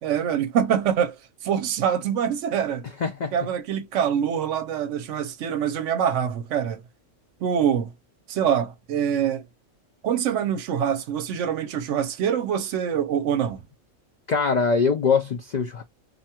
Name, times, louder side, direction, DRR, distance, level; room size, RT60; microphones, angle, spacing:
voice 1, 0.0-2.9 3.3-6.8 7.4-7.9 8.3-9.4 10.0-13.6, right 8 dB, 75° right, 0.9 m, -25 dB
voice 2, 3.0-3.3 14.3-15.8, left 5 dB, 90° left, 0.4 m, -22 dB
2.5 x 2.2 x 2.7 m
omnidirectional pair, 1.3 m